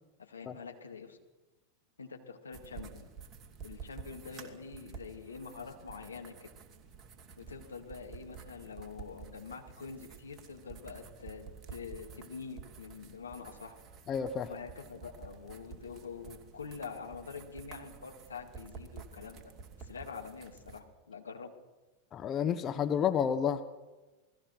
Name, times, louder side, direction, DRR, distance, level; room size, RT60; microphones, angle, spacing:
voice 1, 0.2-1.2 2.0-3.1 3.6-6.5 7.4-13.8 14.5-19.5 19.8-21.5, left 5 dB, 75° left, 4 dB, 3.0 m, -45 dB
sound 1, 2.5-20.8, right 6 dB, 30° right, 2.8 m, -51 dB
voice 2, 14.1-14.5 22.1-23.6, left 8 dB, 30° left, 10 dB, 1.1 m, -30 dB
28.0 x 19.5 x 6.2 m, 1.2 s
figure-of-eight pair, 90°, 0 cm